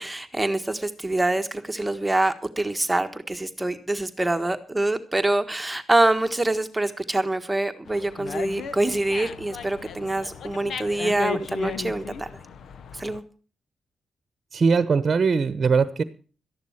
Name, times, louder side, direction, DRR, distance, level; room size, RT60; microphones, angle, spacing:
voice 1, 0.0-12.3 13.0-13.2, right 2 dB, 15° right, 7 dB, 1.4 m, -25 dB
Dog, 7.9-13.2, left 7 dB, 70° left, 1.0 m, -36 dB
voice 2, 14.5-16.0, right 5 dB, 45° right, 13 dB, 1.0 m, -20 dB
13.5 x 11.0 x 5.8 m, 0.39 s
supercardioid pair, 60°, 0 cm